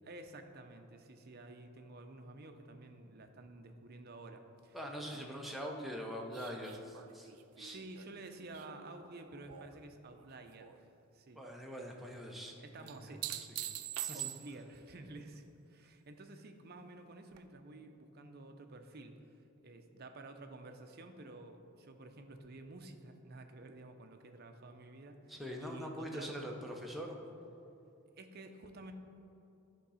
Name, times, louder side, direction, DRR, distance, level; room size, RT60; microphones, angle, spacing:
voice 1, 0.0-4.8 5.1-5.4 7.6-10.9 11.1-11.4 12.6-13.2 13.8-13.9 14.1-19.1 19.6-26.4 28.2-28.9, right 2 dB, 45° right, 5 dB, 0.6 m, -51 dB
voice 2, 4.7-7.3 7.6-7.8 11.3-13.1 13.6-13.7 14.0-14.2 25.3-27.2, equal, ahead, -1 dB, 0.7 m, -43 dB
sound 1, 6.3-9.8 10.2-10.8 12.9-14.8 17.3-17.4, right 13 dB, 90° right, 0.4 m, -44 dB
11.0 x 3.8 x 5.6 m, 2.7 s
head